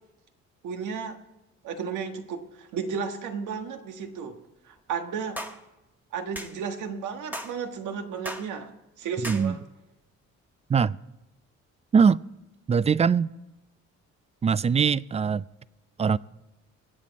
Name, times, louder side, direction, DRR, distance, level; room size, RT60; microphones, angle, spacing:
voice 1, 0.6-1.2 1.6-4.4 4.6-5.4 6.1-9.6, right 6 dB, 80° right, 1.6 m, -33 dB
sound 1, 5.4-5.6 6.4-6.5 7.3-7.6 8.3-8.5 9.2-9.5, equal, 5° right, 1.3 m, -35 dB
voice 2, 9.2-9.5 10.7-11.0 11.9-12.2 12.7-13.3 14.4-15.5 16.0-16.2, right 6 dB, 20° right, 0.3 m, -21 dB
25.0 x 8.3 x 4.2 m
cardioid pair, 90°, 30 cm